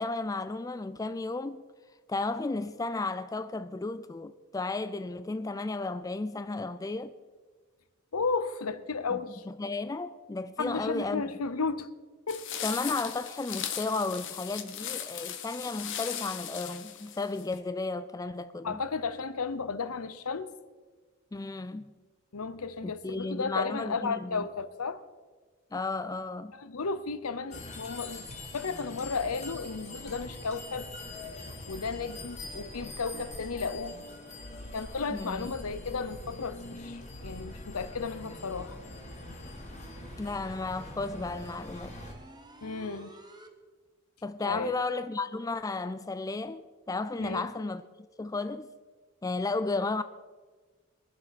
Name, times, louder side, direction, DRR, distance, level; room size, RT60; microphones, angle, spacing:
voice 1, 0.0-1.6 2.1-7.2 9.1-11.2 12.6-18.8 21.3-21.9 22.8-24.5 25.7-26.5 35.1-35.5 40.2-42.0 44.2-47.8 48.2-48.7 49.2-50.0, left 3 dB, 15° left, 0.3 m, -33 dB
voice 2, 8.1-9.4 10.6-11.9 12.3-12.5 18.6-20.5 22.3-25.0 26.5-28.3 28.5-30.9 31.7-34.0 34.6-38.8 42.6-43.1 44.5-44.8 47.2-47.5, left 4 dB, 75° left, 0.8 m, -34 dB
sound 1, 12.3-17.6, left 9 dB, 55° left, 1.2 m, -38 dB
sound 2, 27.5-42.1, left 2 dB, 30° left, 2.4 m, -43 dB
sound 3, 37.1-43.5, right 1 dB, 20° right, 1.3 m, -51 dB
22.0 x 7.8 x 5.8 m
head